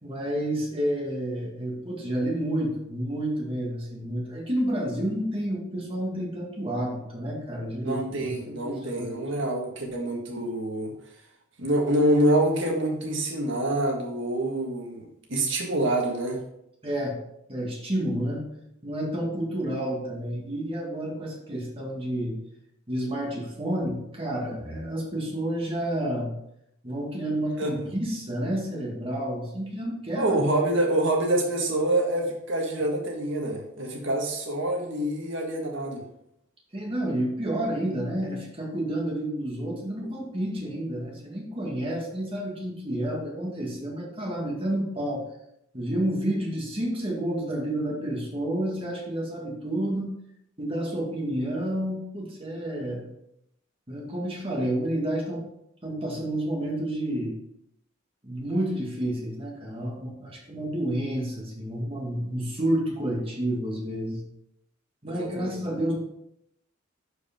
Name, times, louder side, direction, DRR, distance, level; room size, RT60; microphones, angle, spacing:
voice 1, 0.0-9.1 16.8-17.2 17.5-18.4 18.8-22.3 22.9-26.3 26.8-30.4 36.7-45.2 45.7-50.1 50.6-53.1 53.9-55.4 55.8-57.4 58.2-64.2 65.0-66.0, right 1 dB, 25° right, -1 dB, 1.9 m, -30 dB
voice 2, 7.8-10.9 11.6-15.0 15.3-16.4 27.6-27.7 30.2-36.0 40.0-40.1 65.1-65.6, right 1 dB, 60° right, 1 dB, 1.7 m, -26 dB
11.0 x 4.9 x 3.7 m, 0.78 s
head